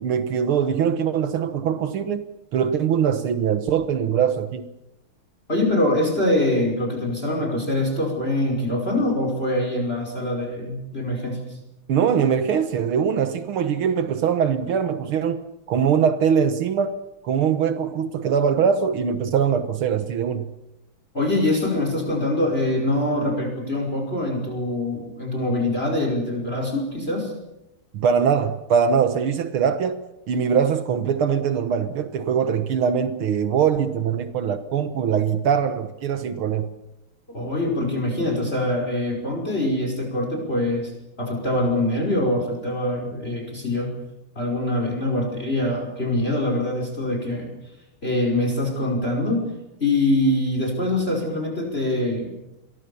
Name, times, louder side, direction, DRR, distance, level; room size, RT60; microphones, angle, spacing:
voice 1, 0.0-4.7 11.9-15.4 15.7-17.0 17.2-20.5 27.9-30.0 30.3-36.7, right 7 dB, 75° right, 10 dB, 2.1 m, -22 dB
voice 2, 5.5-11.4 21.1-27.3 37.3-40.9 41.2-43.9 44.4-47.5 48.0-49.5 49.8-52.3, left 1 dB, 25° left, 2 dB, 5.7 m, -24 dB
28.5 x 22.5 x 7.0 m, 0.91 s
omnidirectional pair, 2.3 m